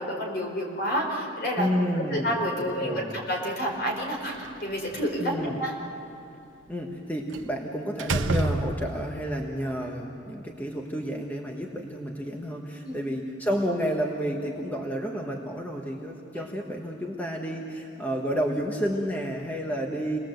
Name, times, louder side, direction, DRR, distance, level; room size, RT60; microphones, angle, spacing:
voice 1, 0.0-1.7 2.1-5.7 12.8-13.0 16.3-16.5, equal, 55° left, 0 dB, 4.5 m, -29 dB
voice 2, 1.6-3.2 5.2-5.6 6.7-20.2, equal, 10° left, 0 dB, 1.3 m, -30 dB
Slam, 4.2-5.2 7.3-7.6 8.0-9.2, right 2 dB, 80° right, 1.0 m, -29 dB
28.5 x 20.0 x 7.9 m, 2.8 s
head